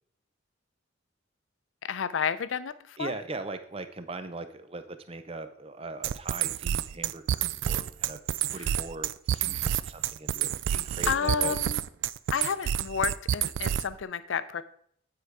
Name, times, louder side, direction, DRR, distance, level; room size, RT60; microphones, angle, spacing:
voice 1, 1.8-3.1 8.5-8.7 11.0-11.8 12.3-14.6, left 7 dB, 80° left, 14 dB, 0.5 m, -31 dB
voice 2, 3.0-8.2 8.5-11.6, right 3 dB, 30° right, 10 dB, 0.6 m, -40 dB
sound 1, 6.0-14.0, right 10 dB, 75° right, 0.3 m, -28 dB
8.8 x 4.7 x 4.7 m, 0.63 s
head